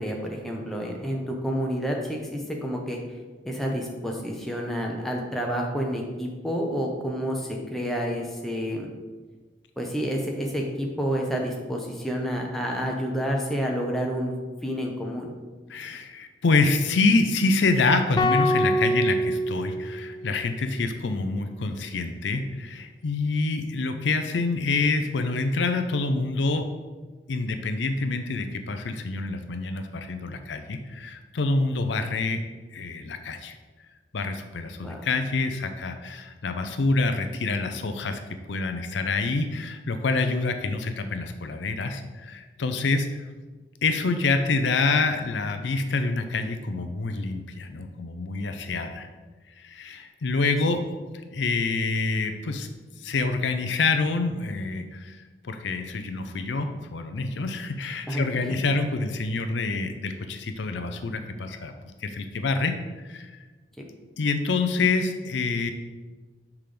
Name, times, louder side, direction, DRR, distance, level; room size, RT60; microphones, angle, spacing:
voice 1, 0.0-3.0 3.5-8.9 9.8-14.3 14.6-15.3 34.8-35.0 58.1-58.2 63.8-63.9, equal, ahead, -1 dB, 0.7 m, -29 dB
voice 2, 15.7-26.7 27.3-32.4 32.7-33.6 34.1-38.2 38.5-43.2 43.8-49.1 49.6-50.8 51.3-52.7 53.0-55.2 55.4-61.7 62.0-63.3 64.2-65.7, left 3 dB, 75° left, 7 dB, 0.5 m, -26 dB
sound 1, 18.2-20.5, equal, 20° left, 0.3 m, -25 dB
5.9 x 3.5 x 5.0 m, 1.3 s
head